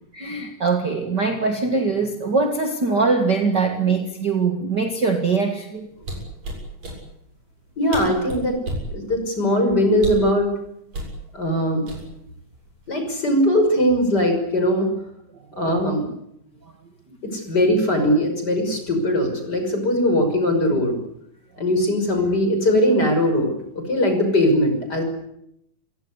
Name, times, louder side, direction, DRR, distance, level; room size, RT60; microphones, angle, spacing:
voice 1, 0.1-5.9 16.6-16.7, right 4 dB, 35° right, 5 dB, 2.2 m, -22 dB
sound 1, 6.0-7.0 7.6-7.7 7.9-8.9 10.0-10.3 10.9-11.2 11.9-12.3 12.7-13.0, right 1 dB, 55° right, 8.3 m, -31 dB
voice 2, 7.8-8.6 8.9-10.5 11.3-11.8 12.9-14.9 15.6-16.0 17.2-21.0 21.6-25.0, equal, 30° left, 5 dB, 6.4 m, -20 dB
28.5 x 17.0 x 9.9 m, 0.79 s
omnidirectional pair, 3.7 m